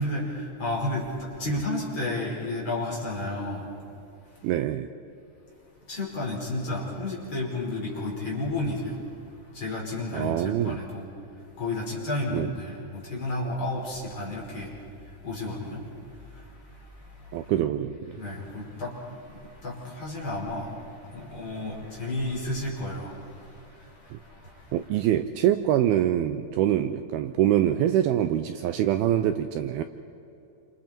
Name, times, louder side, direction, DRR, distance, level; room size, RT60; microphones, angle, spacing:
voice 1, 0.0-3.7 5.9-9.0 9.5-11.1 11.6-14.7 15.2-15.9 16.3-17.7 18.1-24.8, left 2 dB, 30° left, -3 dB, 5.6 m, -32 dB
voice 2, 4.4-4.9 10.1-10.8 12.3-12.5 17.3-18.2 24.1-24.2 24.7-29.8, right 11 dB, 80° right, 9 dB, 2.4 m, -24 dB
29.0 x 28.0 x 4.5 m, 2.8 s
omnidirectional pair, 4.8 m